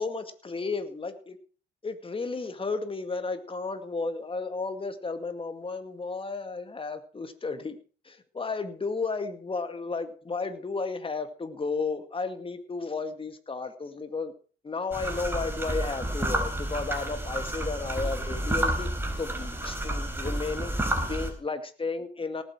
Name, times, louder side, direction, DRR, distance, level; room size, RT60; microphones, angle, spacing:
voice 1, 0.0-1.4 1.8-7.8 8.0-14.3 14.6-22.4, left 4 dB, 25° left, 9 dB, 2.2 m, -33 dB
sound 1, 14.9-21.3, right 1 dB, 10° right, 4.5 m, -30 dB
18.5 x 8.2 x 6.1 m, 0.39 s
cardioid pair, 90°, 20 cm